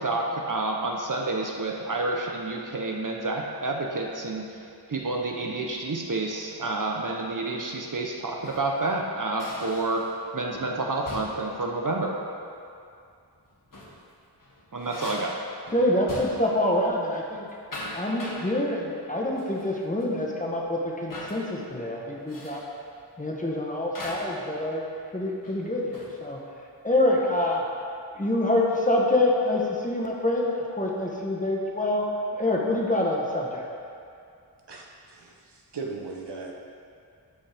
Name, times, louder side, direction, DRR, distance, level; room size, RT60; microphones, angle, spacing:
voice 1, 0.0-4.6 4.9-10.0 10.3-12.1 14.7-15.3, right 2 dB, 45° right, 0 dB, 0.8 m, -29 dB
sound 1, 8.2-8.7 9.4-10.2 10.5-10.7 11.1-11.5 13.5-14.0 14.4-16.6 16.9-17.2 17.5-18.5 19.4-19.7 20.0-20.1 21.1-21.4 22.3-22.7 23.9-24.4 25.4-26.2, left 1 dB, 50° left, 1.5 m, -40 dB
voice 2, 15.7-17.5 17.9-22.6 23.2-24.8 25.1-26.4 26.8-27.6 28.1-32.1 32.4-33.6, left 1 dB, 20° left, -3 dB, 1.1 m, -26 dB
voice 3, 34.7-36.5, right 4 dB, 70° right, -1 dB, 1.0 m, -38 dB
12.5 x 5.3 x 3.5 m, 2.4 s
wide cardioid pair, 90°, 42 cm